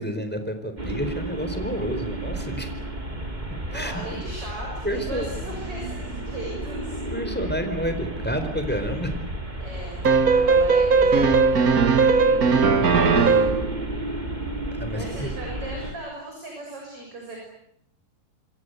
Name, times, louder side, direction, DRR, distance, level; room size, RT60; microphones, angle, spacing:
voice 1, 0.0-2.7 3.7-3.9 4.8-5.3 7.1-9.1 11.7-13.1 14.8-15.3, equal, 5° left, 7 dB, 4.1 m, -30 dB
sound 1, 0.8-15.9, right 1 dB, 10° right, 3.0 m, -32 dB
voice 2, 3.7-7.0 9.6-11.4 12.9-13.5 14.9-17.4, right 2 dB, 40° right, 0 dB, 7.7 m, -37 dB
sound 2, 10.0-13.7, right 5 dB, 65° right, 0.9 m, -18 dB
26.5 x 26.0 x 8.2 m, 0.72 s
omnidirectional pair, 4.2 m